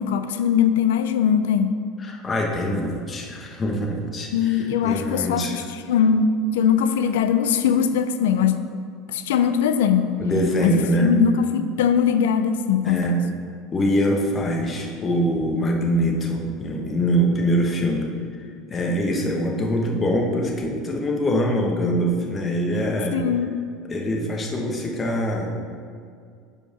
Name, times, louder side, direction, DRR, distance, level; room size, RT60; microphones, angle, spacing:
voice 1, 0.0-1.7 4.3-8.7 9.1-10.2 10.6-13.1 23.1-23.5, left 7 dB, 90° left, 10 dB, 0.4 m, -21 dB
voice 2, 2.0-5.5 10.2-11.1 12.8-13.2 13.7-18.1 18.7-23.2 23.9-25.6, equal, 25° left, 0 dB, 1.2 m, -23 dB
5.4 x 4.7 x 5.8 m, 2.2 s
supercardioid pair, 110°, 0 cm